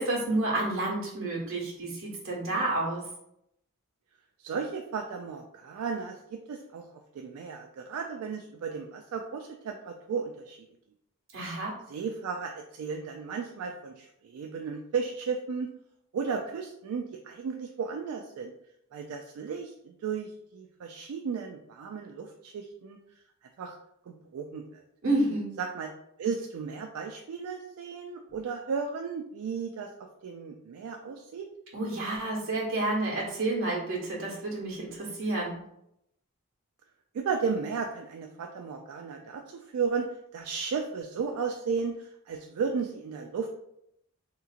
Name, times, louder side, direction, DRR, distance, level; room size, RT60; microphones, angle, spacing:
voice 1, 0.0-3.0 11.3-11.8 25.0-25.6 31.7-35.6, right 2 dB, 65° right, -3 dB, 1.2 m, -30 dB
voice 2, 4.4-6.9 7.1-10.7 11.9-15.7 16.1-18.5 18.9-23.0 23.6-23.8 24.1-24.8 25.6-25.9 26.2-31.5 37.1-43.5, right 5 dB, 85° right, 3 dB, 0.3 m, -34 dB
3.6 x 2.9 x 2.4 m, 0.78 s
head